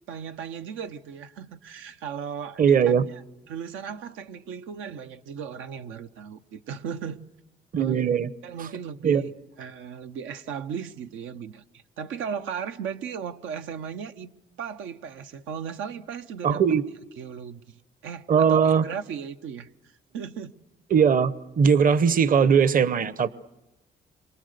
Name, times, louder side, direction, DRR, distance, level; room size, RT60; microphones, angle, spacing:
voice 1, 0.1-2.8 3.5-7.2 7.8-8.0 8.4-9.3 9.6-14.3 14.6-16.6 17.2-19.7 20.1-20.6, right 7 dB, 90° right, 0.9 m, -36 dB
voice 2, 2.6-3.0 7.7-8.3 8.6-8.7 9.0-9.2 16.4-16.8 18.3-18.8 20.9-23.3, right 7 dB, 45° right, 0.8 m, -20 dB
27.5 x 24.0 x 6.7 m
cardioid pair, 90°, 20 cm